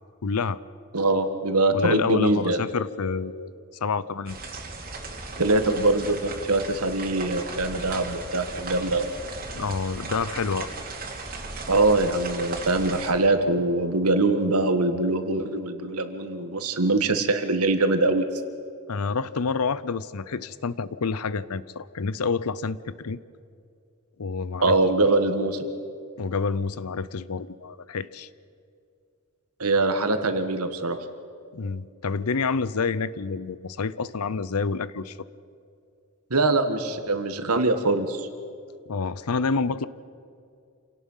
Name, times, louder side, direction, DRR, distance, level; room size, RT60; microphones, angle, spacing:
voice 1, 0.2-0.6 1.7-3.5 3.8-4.4 9.5-10.7 18.9-23.2 24.2-25.1 26.2-28.3 31.5-35.2 38.9-39.9, left 4 dB, 85° left, 18 dB, 0.7 m, -28 dB
voice 2, 0.9-2.6 5.4-9.1 11.7-18.2 24.6-25.7 29.6-31.0 36.3-38.3, right 2 dB, 90° right, 8 dB, 1.7 m, -23 dB
sound 1, 4.3-13.1, right 3 dB, 40° right, 2.7 m, -36 dB
27.5 x 17.5 x 5.7 m, 2.4 s
head